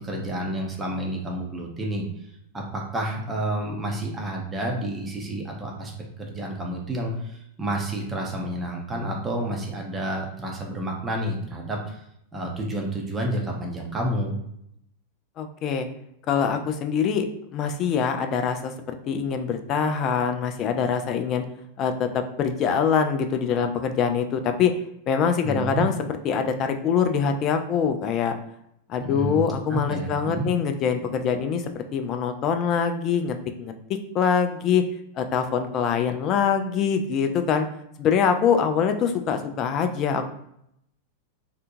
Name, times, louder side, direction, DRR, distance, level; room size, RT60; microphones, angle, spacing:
voice 1, 0.0-5.9 6.2-12.0 12.3-14.4 25.4-25.9 29.0-30.5, right 1 dB, 15° right, 0 dB, 0.6 m, -30 dB
voice 2, 15.4-15.9 16.3-17.3 17.5-18.7 19.1-21.4 21.8-24.7 25.1-25.9 26.2-28.3 28.9-33.7 34.1-34.8 35.2-37.7 38.0-40.2, left 7 dB, 35° left, 7 dB, 0.3 m, -24 dB
2.6 x 2.2 x 2.6 m, 0.75 s
figure-of-eight pair, 90°, 0 cm